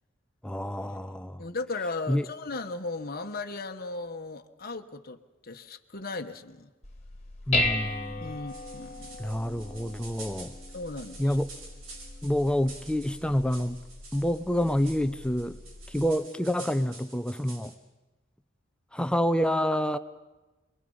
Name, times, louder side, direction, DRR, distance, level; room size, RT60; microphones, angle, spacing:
voice 1, 0.4-1.4 2.1-2.3 7.5-8.3 9.2-10.5 11.2-11.5 12.2-13.8 14.1-15.6 15.9-17.7 18.9-20.0, equal, 5° left, 0.9 m, -28 dB
voice 2, 1.4-6.7 8.2-9.2 10.7-11.4, left 3 dB, 50° left, 1.3 m, -36 dB
Dishes pots and pans, 6.8-16.1, left 2 dB, 35° left, 2.1 m, -36 dB
sound 1, 8.5-17.8, right 3 dB, 85° right, 5.5 m, -49 dB
28.5 x 22.0 x 5.6 m
head